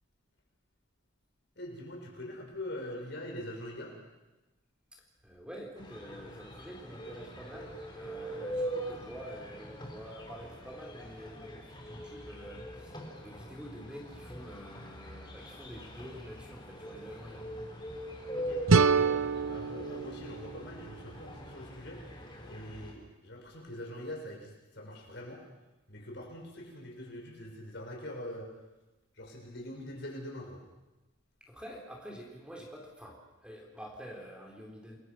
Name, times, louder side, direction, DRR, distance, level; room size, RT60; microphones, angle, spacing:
voice 1, 1.6-4.0 18.3-19.2 19.5-22.0 22.4-25.4 25.9-28.5 29.1-30.6, left 1 dB, 55° left, 1 dB, 6.1 m, -43 dB
voice 2, 4.9-17.5 31.4-35.0, equal, 5° right, 0 dB, 4.0 m, -47 dB
sound 1, 5.8-22.9, right 1 dB, 20° left, 4.1 m, -43 dB
sound 2, 18.7-21.6, right 5 dB, 75° right, 0.8 m, -27 dB
30.0 x 21.5 x 6.2 m, 1.1 s
head